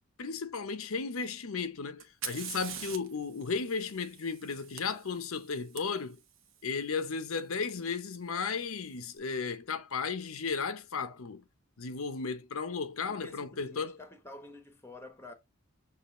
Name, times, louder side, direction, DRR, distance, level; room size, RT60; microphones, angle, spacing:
voice 1, 0.2-6.2 6.6-11.4 11.8-14.0, left 5 dB, 75° left, 0.7 m, -35 dB
Fire, 2.0-5.8 7.7-7.8 8.6-9.0, right 8 dB, 60° right, 0.9 m, -44 dB
voice 2, 13.0-15.3, left 1 dB, 10° left, 0.9 m, -49 dB
6.8 x 2.5 x 3.0 m
head